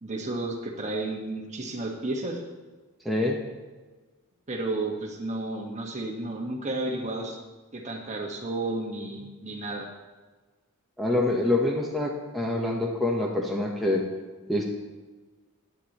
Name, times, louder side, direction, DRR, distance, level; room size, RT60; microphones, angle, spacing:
voice 1, 0.0-2.4 4.5-7.4 7.7-9.9, right 2 dB, 30° right, 1 dB, 1.5 m, -32 dB
voice 2, 3.0-3.4 11.0-14.0 14.5-14.6, left 2 dB, ahead, -3 dB, 1.0 m, -26 dB
15.5 x 9.7 x 3.1 m, 1.3 s
head